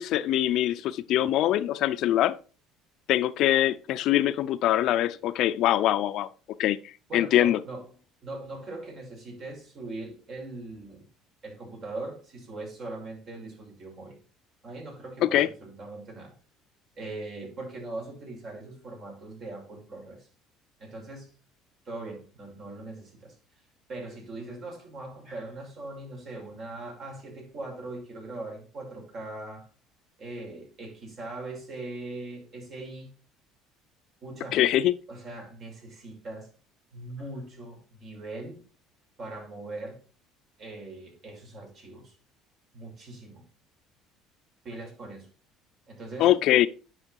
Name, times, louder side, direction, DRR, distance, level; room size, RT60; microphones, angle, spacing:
voice 1, 0.0-2.4 3.1-6.3 6.6-6.8 7.1-7.6 15.2-15.5 34.5-34.9 46.2-46.7, left 13 dB, 65° left, 0.6 m, -23 dB
voice 2, 7.1-7.9 8.2-11.1 11.4-14.2 14.6-16.3 17.0-20.3 20.8-21.3 21.8-23.3 23.9-29.7 30.2-33.1 34.2-34.6 35.1-36.5 36.9-38.6 39.2-40.0 40.6-42.2 42.7-43.5 44.6-45.3 45.9-46.4, right 2 dB, 50° right, 5.9 m, -40 dB
9.9 x 5.7 x 4.7 m
cardioid pair, 105°, 0 cm